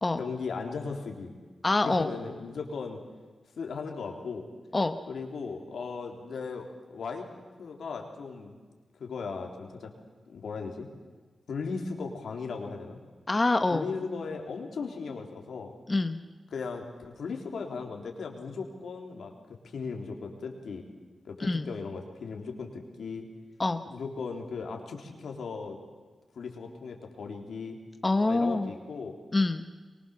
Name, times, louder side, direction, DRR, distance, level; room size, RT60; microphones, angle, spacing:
voice 1, 0.2-1.3 1.8-3.0 3.6-4.4 5.1-7.3 7.6-8.6 9.0-9.9 10.3-10.9 11.5-13.0 13.7-15.7 16.5-19.3 19.6-20.8 21.3-23.3 23.9-25.8 26.4-27.8 28.2-29.1, left 4 dB, 85° left, 2 dB, 3.7 m, -37 dB
voice 2, 1.6-2.1 4.7-5.0 13.3-13.9 15.9-16.2 21.4-21.7 23.6-23.8 28.0-28.7 29.3-29.6, left 2 dB, 30° left, 8 dB, 1.3 m, -25 dB
23.5 x 23.5 x 7.3 m, 1.4 s
cardioid pair, 65°, 0 cm